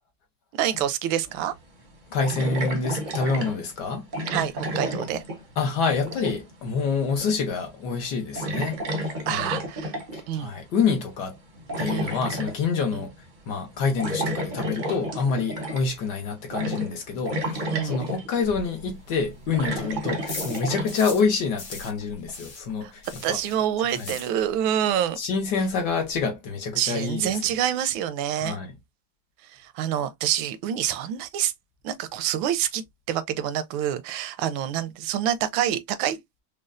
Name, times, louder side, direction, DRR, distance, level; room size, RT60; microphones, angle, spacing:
voice 1, 0.5-1.5 4.3-5.2 9.3-9.9 10.3-10.5 11.9-12.2 12.9-13.1 17.7-18.1 22.8-25.2 26.8-28.6 29.4-31.5 31.8-36.4, right 10 dB, 85° right, 1.4 m, -27 dB
sound 1, 1.3-1.4 2.2-3.6 4.1-5.6 5.9-6.5 7.2-7.6 7.9-8.0 8.3-10.2 11.3-12.6 14.0-16.0 16.5-17.0 17.2-18.4 19.1-21.0, equal, 45° right, 0.6 m, -31 dB
voice 2, 2.1-4.1 5.6-9.6 10.1-11.4 11.8-13.2 13.5-23.0 23.3-23.4 24.0-24.1 25.2-27.4 28.4-28.7, left 5 dB, 65° left, 1.3 m, -27 dB
sound 2, 18.4-21.3 21.6-24.8 25.0-25.1 25.5-25.6 25.7-26.2, left 3 dB, 85° left, 2.5 m, -40 dB
5.2 x 2.2 x 2.4 m
omnidirectional pair, 2.1 m